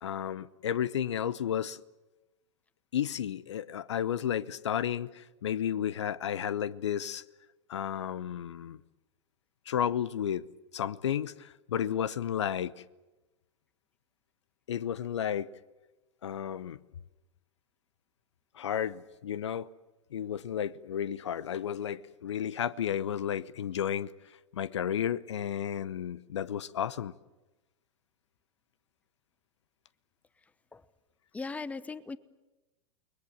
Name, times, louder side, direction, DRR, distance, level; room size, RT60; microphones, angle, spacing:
voice 1, 0.0-1.8 2.9-7.2 7.7-8.8 9.7-10.4 10.7-12.8 14.7-15.5 16.2-16.8 18.6-19.7 20.1-24.1 24.5-27.1, left 9 dB, 65° left, 0.8 m, -32 dB
voice 2, 31.3-32.2, left 4 dB, 10° left, 0.9 m, -38 dB
29.5 x 21.0 x 7.4 m
figure-of-eight pair, 95°, 16 cm